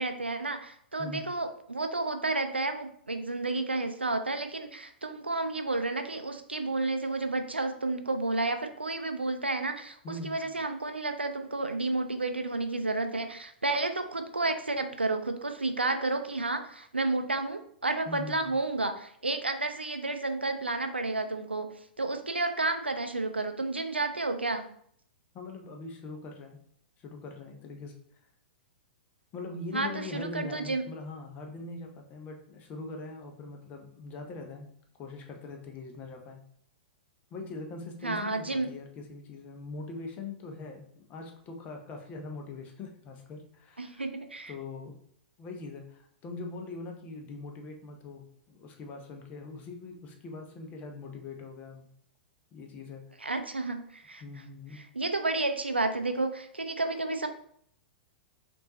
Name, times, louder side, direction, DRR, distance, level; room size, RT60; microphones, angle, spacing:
voice 1, 0.0-10.0 10.2-21.7 22.0-24.6 29.7-30.9 38.0-38.7 43.8-44.5 53.2-54.2 54.7-57.3, right 2 dB, 85° right, 7 dB, 0.4 m, -31 dB
voice 2, 10.0-10.5 18.1-18.5 25.3-26.6 27.0-27.9 29.3-34.7 35.0-36.4 37.3-44.1 44.5-44.9 45.4-51.9 52.5-53.3 54.2-54.8, left 3 dB, 30° left, 3 dB, 0.8 m, -42 dB
5.5 x 2.6 x 2.9 m, 0.64 s
figure-of-eight pair, 105°, 6 cm